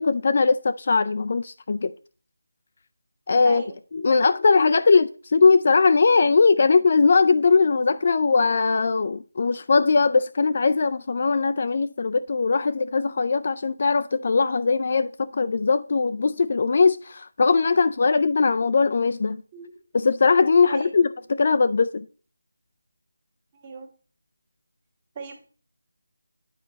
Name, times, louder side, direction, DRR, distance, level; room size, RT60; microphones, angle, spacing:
voice 1, 0.0-1.9 3.3-3.6 3.9-19.4 19.9-22.1, left 4 dB, 40° left, 0.3 m, -20 dB
voice 2, 23.5-23.9 25.1-25.5, right 4 dB, 20° right, 1.3 m, -37 dB
9.0 x 5.2 x 4.0 m
figure-of-eight pair, 170°, 0 cm